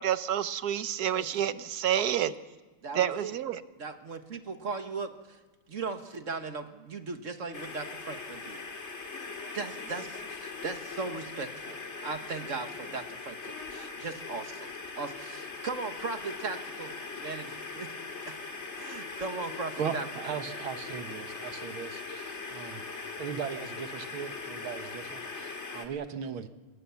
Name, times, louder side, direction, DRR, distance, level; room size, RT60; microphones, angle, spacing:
voice 1, 0.0-2.3 2.9-3.6, right 10 dB, 60° right, 13 dB, 1.2 m, -29 dB
voice 2, 2.8-3.3 3.8-5.4 5.7-8.6 9.5-11.8 12.0-17.9 18.2-18.4 18.8-20.1, right 4 dB, 40° right, 7 dB, 1.7 m, -38 dB
sound 1, 7.5-25.9, left 4 dB, 35° left, 2.2 m, -40 dB
voice 3, 19.8-22.8 23.2-26.5, right 7 dB, 75° right, 9 dB, 2.1 m, -38 dB
27.5 x 20.0 x 7.1 m, 1.2 s
omnidirectional pair, 2.3 m